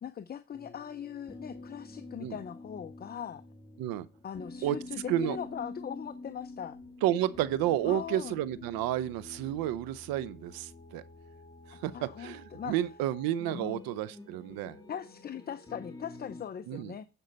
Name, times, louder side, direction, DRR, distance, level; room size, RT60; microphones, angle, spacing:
voice 1, 0.0-3.4 4.2-6.8 7.8-8.4 11.7-12.8 13.5-13.9 14.9-17.0, left 8 dB, 25° left, 0.5 m, -40 dB
sound 1, 0.5-16.4, left 2 dB, 10° left, 1.9 m, -48 dB
voice 2, 7.0-11.0 11.7-14.8 16.7-16.9, right 12 dB, 75° right, 0.7 m, -31 dB
9.0 x 5.4 x 5.2 m
supercardioid pair, 80°, 35 cm